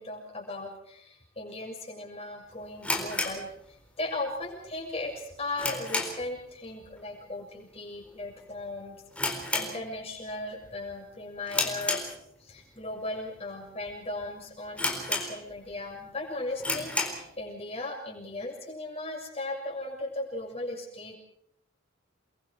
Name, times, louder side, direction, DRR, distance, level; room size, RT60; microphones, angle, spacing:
voice 1, 0.0-3.5 4.0-12.1 12.4-21.2, left 2 dB, 30° left, 1 dB, 6.9 m, -37 dB
sound 1, 2.8-4.2 4.4-4.5 5.1-6.4 6.7-7.0 7.3-7.4 8.1-8.3 8.6-8.7 9.1-10.3 10.6-10.9 11.5-12.6 13.2-13.3 13.9-14.0 14.2-14.3 14.8-15.7 16.1-16.2 16.6-17.3, left 2 dB, 5° left, 4.0 m, -31 dB
29.5 x 22.5 x 4.8 m, 0.70 s
head